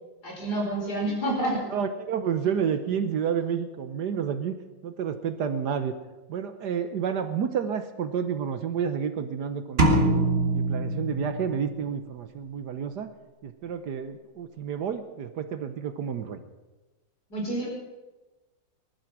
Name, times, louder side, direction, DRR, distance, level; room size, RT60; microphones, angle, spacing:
voice 1, 0.2-1.7 17.3-17.7, right 1 dB, 55° left, -1 dB, 5.3 m, -28 dB
voice 2, 1.7-4.6 4.8-5.9 6.3-10.1 10.5-13.1 13.4-16.4, right 7 dB, 65° right, 10 dB, 1.4 m, -30 dB
sound 1, 9.8-11.8, right 2 dB, 35° right, 1.8 m, -23 dB
19.5 x 12.0 x 6.0 m, 1.1 s
omnidirectional pair, 2.0 m